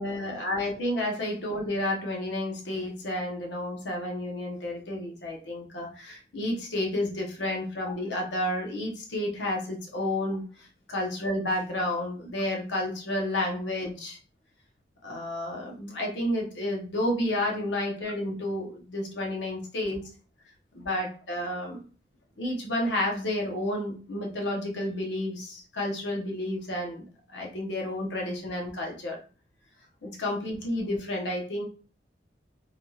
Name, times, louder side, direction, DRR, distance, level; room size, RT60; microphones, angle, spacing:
voice 1, 0.0-14.2 15.0-20.1 20.7-21.9 22.4-29.2 30.0-31.7, left 1 dB, 90° left, -1 dB, 0.8 m, -31 dB
3.3 x 2.3 x 2.7 m, 0.38 s
head